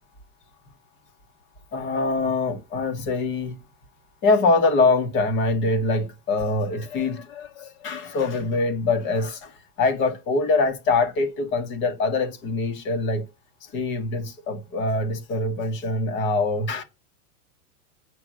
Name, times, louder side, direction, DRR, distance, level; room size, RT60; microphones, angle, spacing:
voice 1, 1.7-3.6 4.2-13.3 13.7-16.8, left 3 dB, 25° left, 1.6 m, -24 dB
8.4 x 6.4 x 5.5 m
supercardioid pair, 165°, 46 cm